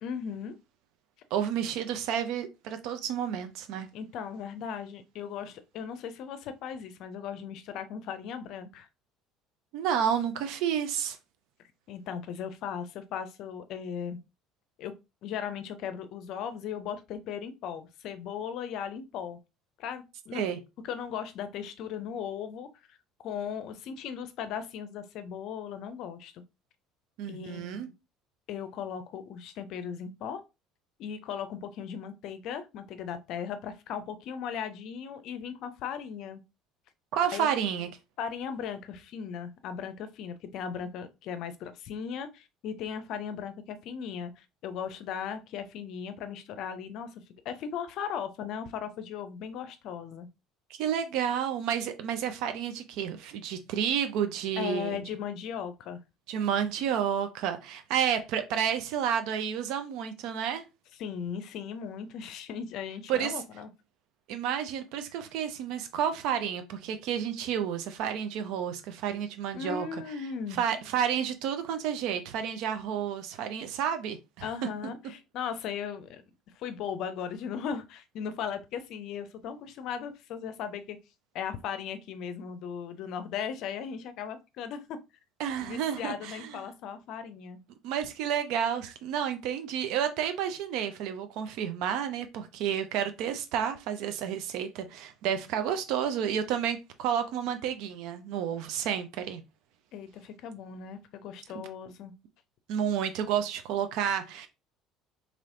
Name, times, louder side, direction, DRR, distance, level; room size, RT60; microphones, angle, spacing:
voice 1, 0.0-0.6 3.9-8.9 11.9-14.2 14.8-14.9 15.2-19.4 19.8-20.4 20.8-23.0 23.2-26.4 27.2-27.8 28.5-30.4 31.0-36.4 37.3-37.5 38.2-50.3 54.6-56.0 61.0-63.7 69.5-70.6 74.4-76.2 76.5-81.0 81.3-85.0 85.6-87.6 99.9-102.1, left 7 dB, 60° left, 0.5 m, -37 dB
voice 2, 1.3-3.9 9.7-11.2 20.3-20.6 27.2-27.9 37.1-37.9 50.7-55.0 56.3-60.6 63.1-63.3 64.3-69.9 70.5-74.5 85.4-86.6 87.8-99.4 101.5-101.7 102.7-104.5, right 8 dB, 65° right, 0.5 m, -30 dB
3.2 x 3.0 x 2.6 m
hypercardioid pair, 65°, 0 cm